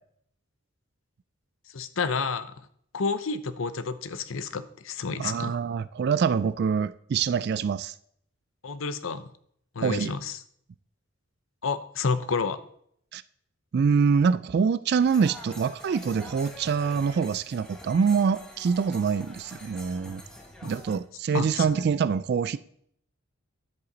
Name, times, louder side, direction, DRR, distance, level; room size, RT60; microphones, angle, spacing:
voice 1, 1.7-2.5 2.9-5.6 8.6-9.3 9.7-10.4 11.6-12.6 20.6-20.7 21.3-21.8, left 4 dB, 70° left, 0.7 m, -30 dB
voice 2, 5.2-7.9 9.8-10.1 13.1-13.2 13.7-20.2 20.6-22.6, right 6 dB, 50° right, 0.3 m, -25 dB
sound 1, 15.0-21.0, equal, 5° left, 1.3 m, -45 dB
10.5 x 8.1 x 3.9 m
head